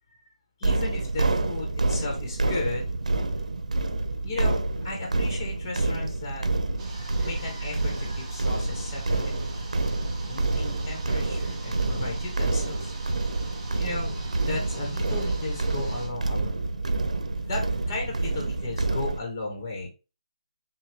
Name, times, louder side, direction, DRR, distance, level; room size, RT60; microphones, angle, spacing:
voice 1, 0.6-2.9 4.2-4.6 4.8-6.5 6.9-9.3 10.3-12.9 13.8-16.5 17.5-19.9, left 3 dB, 25° left, 0 dB, 1.2 m, -35 dB
sound 1, 0.6-19.2, right 2 dB, 80° right, 0.7 m, -28 dB
sound 2, 6.8-16.1, right 3 dB, 15° right, 0.6 m, -45 dB
6.4 x 2.3 x 3.4 m, 0.31 s
hypercardioid pair, 170°, 4 cm